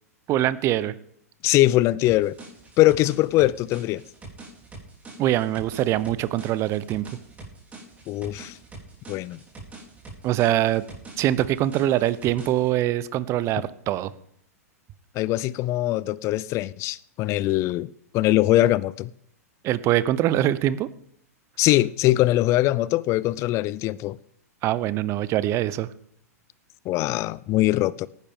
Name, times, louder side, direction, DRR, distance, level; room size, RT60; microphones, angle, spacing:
voice 1, 0.3-0.9 5.2-7.0 10.2-10.8 11.2-14.1 19.6-20.9 24.6-25.9, right 13 dB, 35° right, 0.7 m, -23 dB
voice 2, 1.4-2.3 2.8-4.0 8.1-8.6 9.1-9.4 15.2-17.9 18.1-19.1 21.6-24.2 26.9-28.1, left 16 dB, 35° left, 0.5 m, -22 dB
sound 1, 2.1-12.7, right 3 dB, 15° right, 4.2 m, -44 dB
18.5 x 10.5 x 3.7 m
hypercardioid pair, 105°, 9 cm